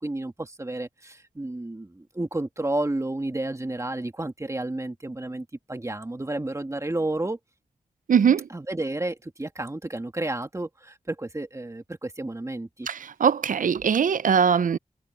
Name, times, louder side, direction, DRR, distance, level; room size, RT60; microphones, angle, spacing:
voice 1, 0.0-7.4 8.5-12.9, right 2 dB, 20° right, 2.0 m, -31 dB
voice 2, 8.1-8.5 12.9-14.8, right 7 dB, 75° right, 0.5 m, -21 dB
wide cardioid pair, 95°, 14 cm